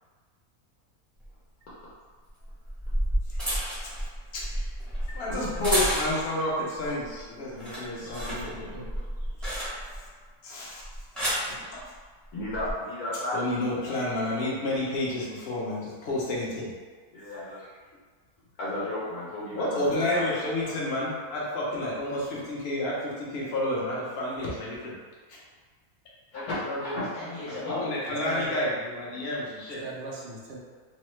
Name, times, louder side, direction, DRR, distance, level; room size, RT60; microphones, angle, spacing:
sound 1, 1.2-1.3 2.5-6.4 6.9-7.2 7.5-10.1 10.8-11.5 12.4-12.7, equal, ahead, 0.6 m, -31 dB
voice 1, 4.3-4.7 5.1-8.8 10.4-10.8 11.2-11.8 13.3-16.7 19.5-24.9 25.3-25.4 26.3-27.0 27.5-29.8, left 1 dB, 50° left, -5 dB, 0.8 m, -30 dB
voice 2, 8.0-9.1 9.4-9.5 28.2-28.5 29.8-30.6, right 2 dB, 65° right, -3 dB, 0.6 m, -40 dB
voice 3, 12.3-13.4 17.1-17.8 18.6-20.7 26.3-27.8, left 1 dB, 70° left, -10 dB, 1.2 m, -34 dB
3.0 x 2.0 x 3.0 m, 1.5 s
omnidirectional pair, 1.6 m